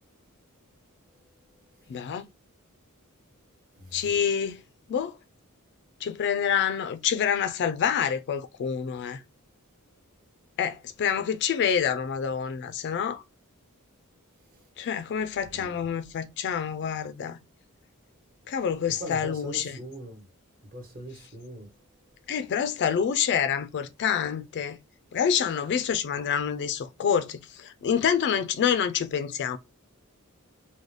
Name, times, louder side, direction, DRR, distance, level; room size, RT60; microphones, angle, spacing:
voice 1, 1.9-2.2 3.9-4.6 4.9-5.1 6.0-9.2 10.6-13.2 14.8-17.4 18.5-19.8 22.3-24.8 25.1-29.6, left 7 dB, 50° left, 0.3 m, -27 dB
voice 2, 3.8-4.1 15.4-15.8 19.0-20.2 20.7-21.7, right 1 dB, 40° right, 1.1 m, -41 dB
3.8 x 2.1 x 3.1 m
head